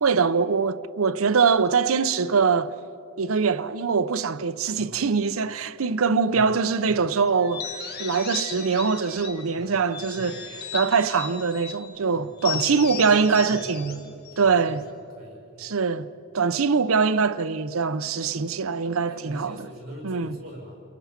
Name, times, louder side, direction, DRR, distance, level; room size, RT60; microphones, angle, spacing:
voice 1, 0.0-2.7 3.2-10.4 10.7-14.0 14.4-14.9 15.6-16.1 16.3-19.6 20.0-20.4, right 5 dB, 85° right, 0.7 m, -23 dB
voice 2, 4.7-5.0 6.3-6.5 6.8-7.1 9.5-9.9 10.1-10.5 12.1-14.0 14.3-14.8 15.1-15.7 19.0-20.8, equal, 50° right, 7.0 m, -42 dB
sound 1, 7.4-9.5 9.9-11.8 12.4-14.9, left 7 dB, 50° left, 1.6 m, -36 dB
29.5 x 22.5 x 5.9 m
head